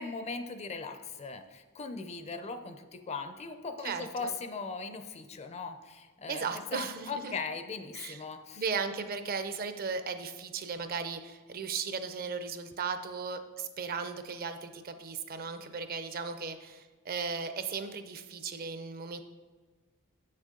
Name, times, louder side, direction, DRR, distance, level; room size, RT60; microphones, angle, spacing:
voice 1, 0.0-8.6, left 4 dB, 30° left, 8 dB, 0.4 m, -39 dB
voice 2, 3.8-4.3 6.3-7.3 7.9-8.2 8.6-19.2, right 5 dB, 40° right, 9 dB, 0.5 m, -36 dB
8.0 x 6.5 x 3.7 m, 1.4 s
head